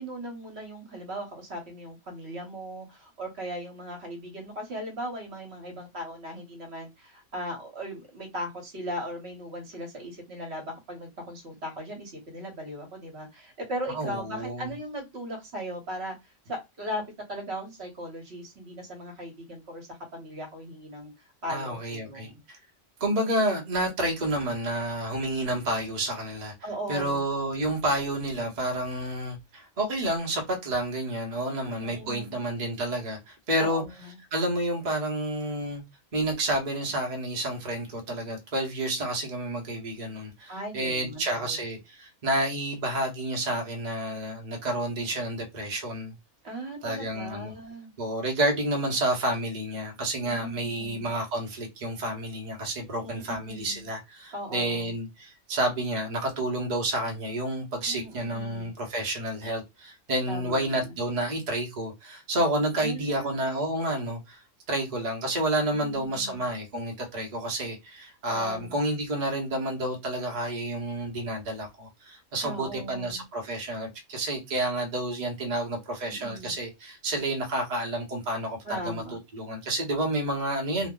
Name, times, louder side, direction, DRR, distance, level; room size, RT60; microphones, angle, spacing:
voice 1, 0.0-16.1 16.4-17.0 17.3-21.1 21.4-22.4 26.6-27.2 31.5-32.4 33.6-34.2 40.5-41.6 46.4-47.9 50.2-51.1 53.0-53.9 54.3-55.0 57.8-58.7 60.3-60.9 62.8-63.4 65.8-66.5 68.3-68.8 72.4-73.2 76.1-76.6 78.6-79.2, equal, 60° right, 1.2 m, -38 dB
voice 2, 13.9-14.7 21.5-22.6 23.0-26.5 26.9-33.8 34.3-35.8 36.1-46.2 46.8-47.5 48.0-79.0 79.3-80.9, right 1 dB, 40° right, 0.9 m, -30 dB
2.8 x 2.1 x 3.7 m
omnidirectional pair, 1.3 m